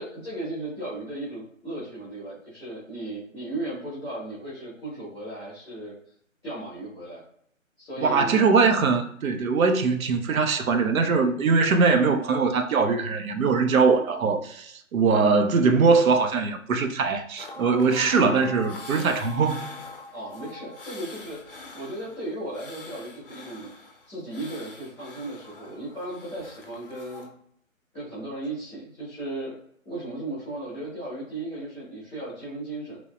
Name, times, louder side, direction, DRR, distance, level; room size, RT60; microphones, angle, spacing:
voice 1, 0.0-5.9 6.4-7.2 7.8-8.4 20.1-23.7 24.1-27.3 27.9-29.5 29.8-33.0, right 1 dB, 5° right, 0.5 m, -36 dB
voice 2, 8.0-19.6, right 4 dB, 85° right, 0.5 m, -21 dB
sound 1, 17.4-27.3, left 3 dB, 45° left, 0.5 m, -43 dB
3.1 x 2.0 x 2.5 m
figure-of-eight pair, 155°, 40 cm